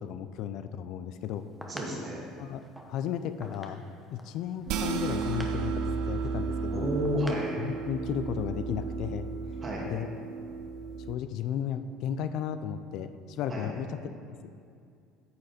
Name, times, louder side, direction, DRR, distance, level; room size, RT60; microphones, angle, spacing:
voice 1, 0.0-1.4 2.4-3.8 4.1-6.9 7.6-9.3 9.8-10.1 11.1-14.4, left 9 dB, 65° left, 11 dB, 0.4 m, -34 dB
sound 1, 1.2-7.5, equal, ahead, 0.9 m, -48 dB
voice 2, 1.7-2.2 6.7-7.7 9.6-9.9 13.5-13.7, equal, 30° right, -3 dB, 2.3 m, -31 dB
sound 2, 4.7-11.1, right 5 dB, 65° right, 0.5 m, -34 dB
9.3 x 6.5 x 4.2 m, 2.4 s
supercardioid pair, 110°, 0 cm